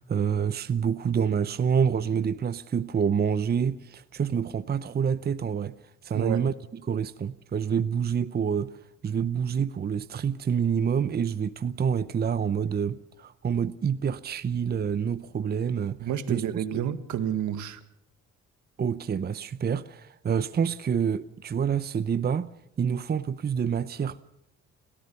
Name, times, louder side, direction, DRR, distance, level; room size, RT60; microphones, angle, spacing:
voice 1, 0.0-5.7 6.0-6.5 6.9-8.7 9.0-16.0 16.3-16.4 18.8-22.5 22.8-24.2, right 7 dB, 35° right, 0.7 m, -27 dB
voice 2, 16.0-17.8, right 10 dB, 75° right, 1.7 m, -30 dB
30.0 x 13.5 x 6.9 m
cardioid pair, 90°, 30 cm